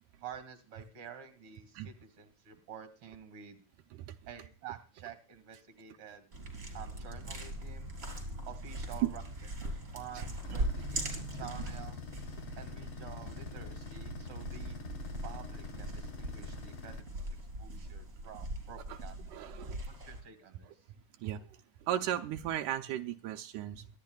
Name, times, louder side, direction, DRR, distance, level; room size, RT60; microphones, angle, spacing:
voice 1, 0.2-3.6 4.3-6.3 6.7-8.0 8.5-9.2 9.6-12.0 12.6-14.8 15.2-19.3 19.9-20.9, right 8 dB, 45° right, 9 dB, 2.8 m, -49 dB
sound 1, 6.3-20.2, right 1 dB, 25° right, 4.0 m, -41 dB
sound 2, 10.4-17.0, left 4 dB, 55° left, 2.3 m, -45 dB
voice 2, 19.3-19.9 21.2-23.9, right 12 dB, 85° right, 5 dB, 2.2 m, -36 dB
24.0 x 11.5 x 2.3 m, 0.36 s
omnidirectional pair, 3.4 m